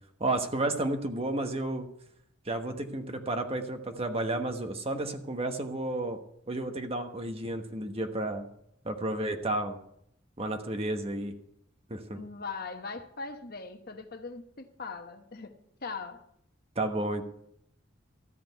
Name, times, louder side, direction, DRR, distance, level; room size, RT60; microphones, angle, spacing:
voice 1, 0.2-1.9 2.5-6.2 6.5-8.5 8.8-9.8 10.4-11.4 11.9-12.2 16.7-17.3, right 2 dB, 30° right, 6 dB, 1.2 m, -32 dB
voice 2, 12.1-16.2, left 4 dB, 50° left, 7 dB, 1.0 m, -40 dB
13.5 x 5.1 x 9.1 m, 0.73 s
head